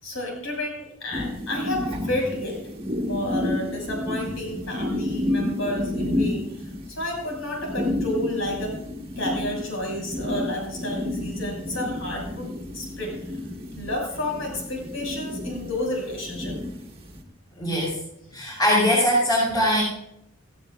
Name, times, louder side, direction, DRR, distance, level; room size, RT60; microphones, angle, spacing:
voice 1, 0.0-2.6 3.1-8.8 9.2-13.2 13.7-16.6 18.3-18.4, left 1 dB, 65° left, 0 dB, 6.3 m, -31 dB
sound 1, 1.1-17.2, left 1 dB, 25° right, 1.6 m, -31 dB
voice 2, 17.6-18.0 18.3-19.8, equal, 20° left, -5 dB, 5.5 m, -21 dB
16.5 x 16.5 x 2.5 m, 0.78 s
head